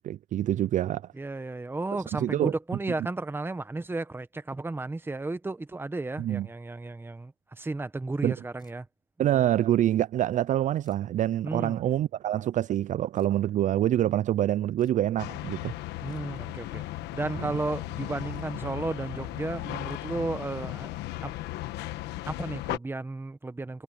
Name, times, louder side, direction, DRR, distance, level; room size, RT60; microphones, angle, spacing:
voice 1, 0.0-1.0 2.2-2.5 6.2-6.5 8.2-8.3 9.2-15.7, right 12 dB, 50° right, 0.4 m, -26 dB
voice 2, 1.1-8.9 11.4-11.8 16.0-16.8 17.1-20.9 21.2-21.3 22.2-23.8, right 2 dB, 15° right, 1.3 m, -33 dB
sound 1, 8.6-9.1 10.8-11.1 13.1-13.4 14.8-15.1 16.1-16.4 18.3-18.5 19.9-20.0, left 4 dB, 25° left, 7.0 m, -62 dB
sound 2, 15.2-22.8, left 16 dB, 85° left, 1.3 m, -36 dB
sound 3, 17.0-20.9 21.2-21.5, left 9 dB, 45° left, 1.2 m, -48 dB
cardioid pair, 110°, 17 cm